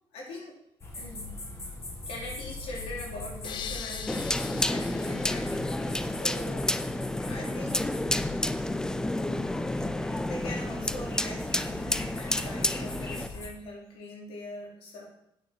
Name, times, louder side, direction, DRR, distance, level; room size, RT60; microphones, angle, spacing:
voice 1, 0.1-0.6 0.9-1.4 2.1-7.9 10.2-15.1, left 1 dB, 90° left, -2 dB, 3.2 m, -42 dB
sound 1, 0.8-13.5, left 2 dB, 30° left, 2.2 m, -41 dB
sound 2, 3.4-6.4, left 8 dB, 55° left, 0.6 m, -42 dB
sound 3, 4.1-13.3, left 1 dB, 5° left, 0.4 m, -30 dB
9.1 x 6.0 x 5.8 m, 0.79 s
cardioid pair, 130°, 10 cm